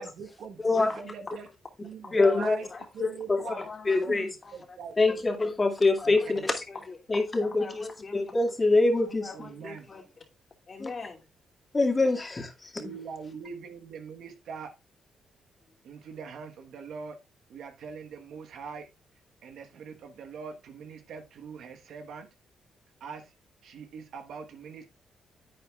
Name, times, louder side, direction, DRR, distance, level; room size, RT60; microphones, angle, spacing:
voice 1, 0.0-1.4 1.8-2.7 2.9-3.6 4.1-4.9 6.0-6.5 9.3-9.9 12.7-14.7 15.8-17.2 17.5-18.9 19.4-22.3 23.0-23.3 23.6-24.9, right 6 dB, 75° right, 1.3 m, -42 dB
voice 2, 0.6-0.9 2.1-2.6 3.0-3.4 3.9-4.4 5.0-6.6 7.1-7.9 8.1-9.3 10.8-10.9 11.7-13.0, left 3 dB, 30° left, 2.2 m, -25 dB
voice 3, 2.0-2.9 3.4-4.0 4.4-5.0 6.0-8.2 9.2-10.2 10.7-11.3, left 4 dB, 45° left, 2.6 m, -43 dB
10.0 x 8.6 x 2.4 m
supercardioid pair, 60°, 0 cm